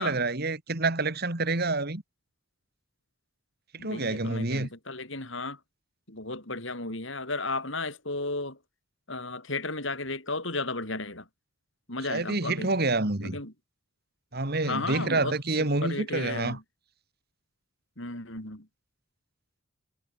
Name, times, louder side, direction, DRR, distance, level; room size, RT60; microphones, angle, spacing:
voice 1, 0.0-2.0 3.7-4.7 12.1-13.4 14.3-16.6, right 2 dB, 50° right, 2.3 m, -28 dB
voice 2, 3.8-5.6 6.1-8.6 9.1-11.2 11.9-12.7 13.2-13.5 14.6-15.4 15.8-16.6 18.0-18.7, left 2 dB, 60° left, 7.9 m, -34 dB
head